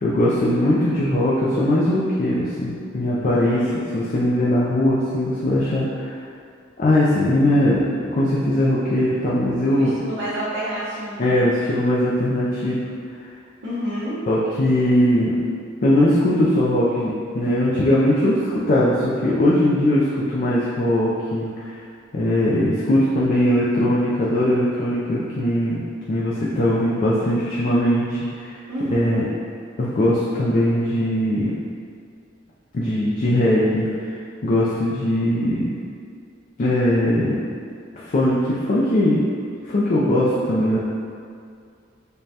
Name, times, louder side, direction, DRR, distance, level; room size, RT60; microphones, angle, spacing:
voice 1, 0.0-3.6 3.9-6.2 6.8-7.8 8.1-9.9 11.2-12.8 14.3-15.3 15.8-18.4 18.7-21.7 22.1-25.8 26.1-28.6 28.9-29.2 29.8-31.5 32.7-35.7 36.6-37.3 37.9-39.2 39.7-40.8, left 1 dB, 40° left, -7 dB, 0.4 m, -20 dB
voice 2, 3.2-3.8 9.7-11.5 13.6-14.2 28.7-29.3, equal, 65° right, -10 dB, 0.8 m, -29 dB
5.0 x 2.2 x 2.8 m, 2.3 s
head